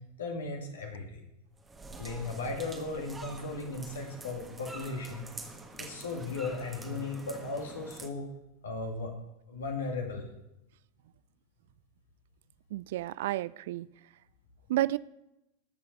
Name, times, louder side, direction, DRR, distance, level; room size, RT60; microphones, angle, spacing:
voice 1, 0.2-1.2 2.0-5.3 5.8-8.3 8.6-9.1 9.5-10.3, left 3 dB, 65° left, 2.1 m, -36 dB
sound 1, 1.6-8.1, right 3 dB, 10° right, 1.5 m, -46 dB
voice 2, 12.7-13.9 14.7-15.0, right 15 dB, 55° right, 0.3 m, -31 dB
20.0 x 6.9 x 4.7 m
figure-of-eight pair, 90°, 0 cm